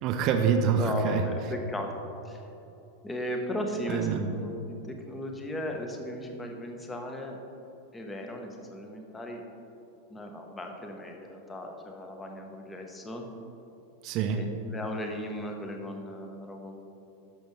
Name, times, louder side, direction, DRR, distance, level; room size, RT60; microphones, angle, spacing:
voice 1, 0.0-1.2 3.9-4.3 14.0-14.4, right 6 dB, 40° right, 6 dB, 0.6 m, -26 dB
voice 2, 0.7-2.0 2.2-2.4 3.0-7.4 7.9-9.4 10.1-13.3 14.3-16.8, left 1 dB, 15° left, 3 dB, 1.0 m, -36 dB
11.5 x 6.4 x 3.2 m, 2.8 s
figure-of-eight pair, 90°, 0 cm